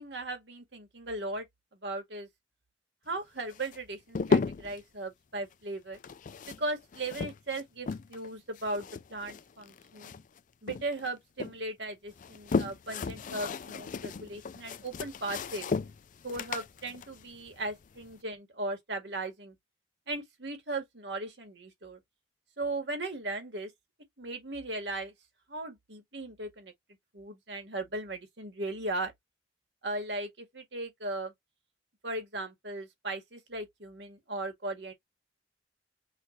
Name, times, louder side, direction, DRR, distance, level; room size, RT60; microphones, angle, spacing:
voice 1, 0.0-1.5 1.8-2.3 3.1-6.0 6.5-10.1 10.6-15.7 16.2-19.6 20.1-22.0 22.6-23.7 24.2-25.1 25.5-26.7 27.1-29.1 29.8-31.3 32.0-34.9, right 2 dB, 70° right, 1.9 m, -37 dB
sound 1, 3.5-4.8 5.9-8.3 8.6-10.4 10.7-11.5 12.1-18.1, left 4 dB, 45° left, 0.4 m, -34 dB
5.8 x 2.7 x 2.9 m
head